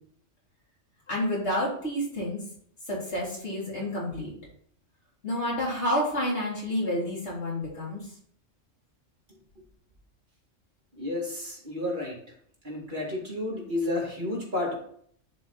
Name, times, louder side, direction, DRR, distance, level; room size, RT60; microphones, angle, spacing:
voice 1, 1.1-2.4 2.9-4.3 5.2-8.0, left 1 dB, 60° left, -5 dB, 3.4 m, -29 dB
voice 2, 11.0-12.1 12.6-14.7, left 2 dB, 40° right, -4 dB, 2.6 m, -31 dB
10.5 x 4.8 x 4.0 m, 0.63 s
omnidirectional pair, 1.3 m